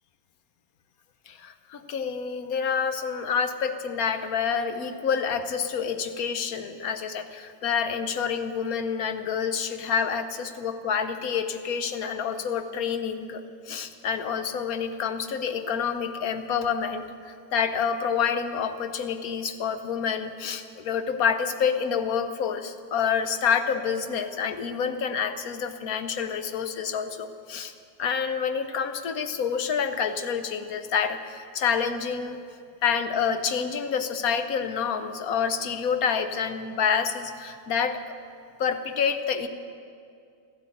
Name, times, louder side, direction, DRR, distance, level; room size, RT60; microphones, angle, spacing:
voice 1, 1.3-27.7 28.0-32.4 32.8-38.0 38.6-39.5, left 6 dB, 65° left, 9 dB, 1.3 m, -28 dB
14.0 x 12.0 x 8.4 m, 2.4 s
omnidirectional pair, 1.7 m